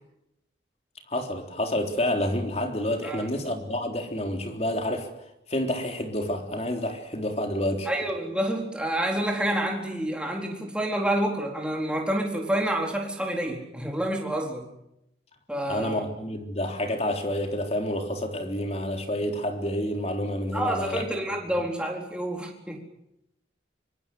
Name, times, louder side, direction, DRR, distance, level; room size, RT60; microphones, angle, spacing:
voice 1, 1.1-5.1 5.5-7.9 15.7-21.1, left 1 dB, 35° left, 4 dB, 3.7 m, -29 dB
voice 2, 7.9-14.7 15.5-16.0 20.5-22.8, right 1 dB, 5° right, 1 dB, 4.1 m, -28 dB
25.0 x 25.0 x 7.8 m, 0.84 s
head